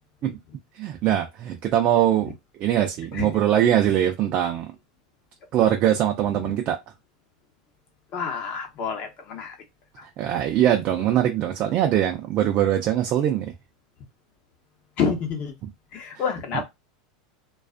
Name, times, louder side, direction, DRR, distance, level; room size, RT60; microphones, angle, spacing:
voice 1, 0.8-2.3 2.6-4.7 5.5-6.8 10.2-13.5, right 11 dB, 40° right, 0.4 m, -22 dB
voice 2, 8.1-9.6 10.0-10.1 15.0-15.5 15.9-16.7, left 6 dB, 45° left, 0.9 m, -28 dB
2.4 x 2.3 x 2.4 m
supercardioid pair, 125°, 3 cm